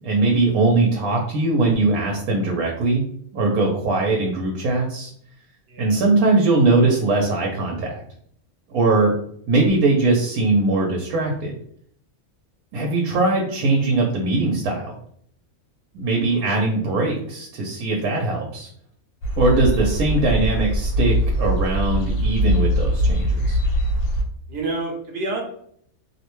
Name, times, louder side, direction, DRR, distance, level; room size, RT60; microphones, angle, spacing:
voice 1, 0.0-3.0 3.3-5.1 5.8-8.0 8.7-9.1 9.5-11.5 12.7-15.0 15.9-18.7 19.4-23.6, right 2 dB, 90° right, 0 dB, 1.1 m, -20 dB
voice 2, 5.7-6.0 16.3-16.4 24.5-25.4, right 2 dB, 55° right, 0 dB, 0.8 m, -29 dB
sound 1, 19.2-24.2, equal, 70° left, 0.9 m, -21 dB
2.7 x 2.1 x 3.0 m, 0.65 s
omnidirectional pair, 1.5 m